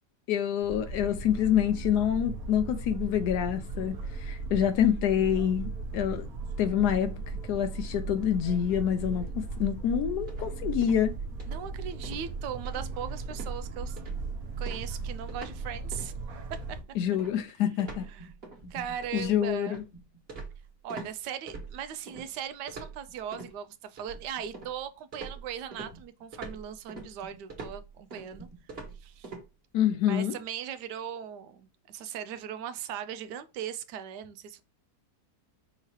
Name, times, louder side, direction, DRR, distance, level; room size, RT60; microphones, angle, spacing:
voice 1, 0.3-6.3 6.6-7.2 7.5-11.1 16.9-18.1 19.1-19.8 29.7-30.3, left 10 dB, 75° left, 1.1 m, -27 dB
sound 1, 0.6-16.8, right 4 dB, 65° right, 1.2 m, -37 dB
sound 2, 10.3-11.1 11.4-11.7 12.0-12.3 12.7-13.1 13.3-13.6 14.0-14.3 14.7-15.6 15.9-16.1 16.5-21.1 21.5-22.3 22.7-23.5 24.0-24.8 25.1-29.4, right 3 dB, 40° right, 1.6 m, -44 dB
voice 2, 11.5-14.0 14.6-16.1 16.5-16.8 18.1-18.4 18.7-19.8 20.8-28.5 29.0-29.3 30.1-34.6, right 9 dB, 85° right, 1.2 m, -39 dB
5.6 x 2.9 x 3.0 m
omnidirectional pair, 1.8 m